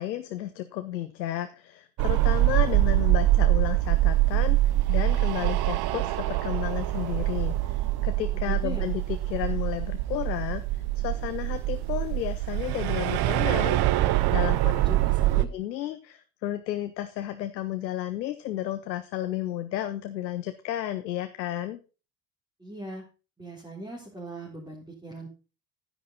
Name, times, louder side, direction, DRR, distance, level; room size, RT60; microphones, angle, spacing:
voice 1, 0.0-13.8 14.3-14.8 15.4-21.8, left 12 dB, 85° left, 10 dB, 0.8 m, -32 dB
sound 1, 2.0-15.4, right 16 dB, 50° right, 0.9 m, -24 dB
voice 2, 8.3-8.9 14.6-15.5 22.6-23.0 23.4-25.3, right 1 dB, 10° right, -3 dB, 3.6 m, -40 dB
10.0 x 9.3 x 3.9 m, 0.33 s
hypercardioid pair, 60°, 50 cm